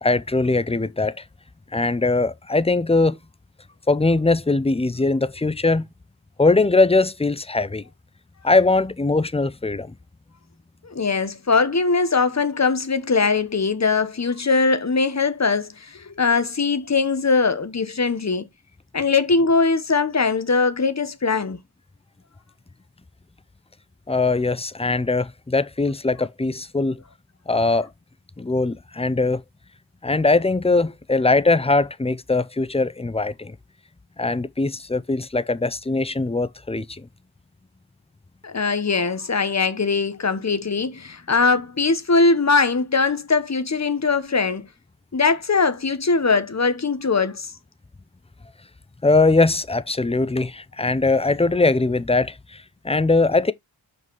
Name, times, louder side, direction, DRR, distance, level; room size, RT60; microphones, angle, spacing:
voice 1, 0.0-1.2 1.7-3.2 3.9-5.9 6.4-7.8 8.4-9.9 24.1-27.0 27.5-27.9 28.4-29.4 30.0-33.6 34.2-37.1 49.0-53.5, left 3 dB, 15° left, 0.5 m, -21 dB
voice 2, 10.8-18.5 18.9-21.6 38.4-44.7 45.1-47.5, left 4 dB, 35° left, 1.1 m, -21 dB
5.6 x 5.2 x 4.7 m
wide cardioid pair, 70°, 50 cm